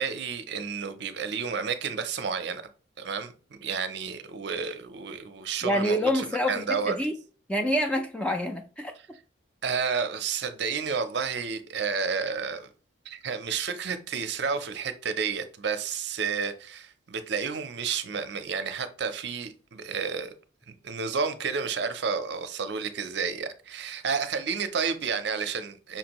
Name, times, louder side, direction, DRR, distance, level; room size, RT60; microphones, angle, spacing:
voice 1, 0.0-2.6 3.0-7.0 9.0-9.1 9.6-12.7 13.1-20.3 20.7-26.0, right 5 dB, 60° right, 0.5 m, -31 dB
voice 2, 5.6-7.1 7.5-8.9, equal, 5° left, 0.3 m, -27 dB
5.6 x 2.6 x 2.9 m
head